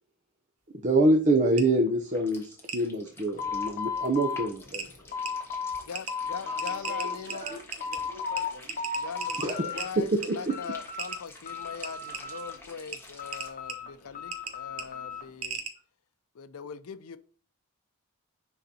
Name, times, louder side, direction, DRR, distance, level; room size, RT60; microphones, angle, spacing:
voice 1, 0.8-4.9 7.3-7.6 9.4-10.5, right 2 dB, 35° right, 0.7 m, -26 dB
sound 1, 1.6-1.7 2.7-2.8 4.2-4.3 4.7-4.9 5.3-5.4 5.9-6.1 6.6-8.0 8.4-8.5 8.7-9.9 10.2-10.3 11.0-11.2 11.8-12.2 12.9-13.0 13.3-13.7 14.3-14.5 14.8-14.9 15.4-15.7, right 6 dB, 85° right, 1.2 m, -36 dB
sound 2, 2.1-13.5, left 2 dB, 10° left, 1.4 m, -51 dB
sound 3, 3.4-5.8 6.1-7.2 7.5-8.5 8.8-9.8 10.2-11.2 11.5-12.7 13.2-15.3, left 5 dB, 40° left, 1.4 m, -35 dB
voice 2, 5.9-7.5 8.9-15.6 16.3-17.2, left 6 dB, 75° left, 0.5 m, -41 dB
voice 3, 6.4-8.8 9.3-9.9, right 1 dB, 55° right, 1.8 m, -46 dB
9.9 x 3.9 x 2.8 m
head